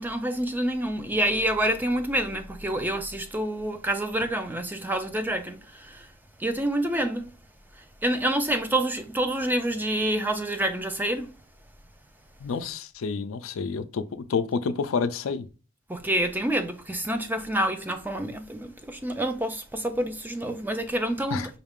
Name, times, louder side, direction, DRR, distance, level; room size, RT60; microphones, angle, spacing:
voice 1, 0.0-6.1 6.4-7.3 8.0-11.3 15.9-21.4, right 1 dB, 10° right, 0.4 m, -27 dB
voice 2, 12.4-15.4 21.3-21.5, left 5 dB, 70° left, 0.4 m, -29 dB
5.5 x 2.4 x 3.5 m
head